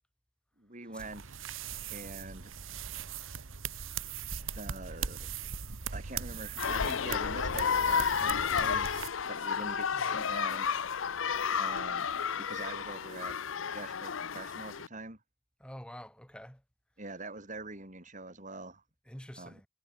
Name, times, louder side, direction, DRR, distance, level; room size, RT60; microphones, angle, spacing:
voice 1, 0.6-1.5 1.9-2.5 4.5-5.3 5.9-9.0 9.3-10.7 11.5-12.1 12.4-13.4 13.7-15.2 17.0-18.8 19.4-19.6, right 2 dB, 40° right, 5.7 m, -44 dB
sound 1, 1.0-9.1, right 7 dB, 85° right, 1.3 m, -40 dB
sound 2, 6.6-14.9, left 7 dB, 80° left, 0.7 m, -32 dB
voice 2, 9.9-10.3 15.6-16.6 19.1-19.7, equal, 5° left, 6.6 m, -47 dB
head